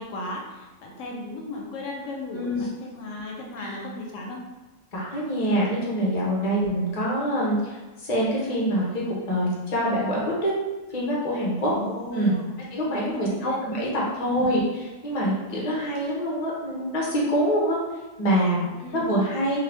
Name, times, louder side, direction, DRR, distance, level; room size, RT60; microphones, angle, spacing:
voice 1, 0.0-4.4 6.5-6.6 11.6-13.6 14.3-14.6 18.8-19.1, left 1 dB, 80° left, 0 dB, 0.9 m, -35 dB
voice 2, 2.3-2.7 3.6-3.8 4.9-10.5 10.9-11.7 12.1-12.3 12.7-14.6 15.0-17.8 18.2-19.6, equal, 40° left, -5 dB, 0.8 m, -25 dB
2.6 x 2.4 x 3.3 m, 1.2 s
omnidirectional pair, 1.3 m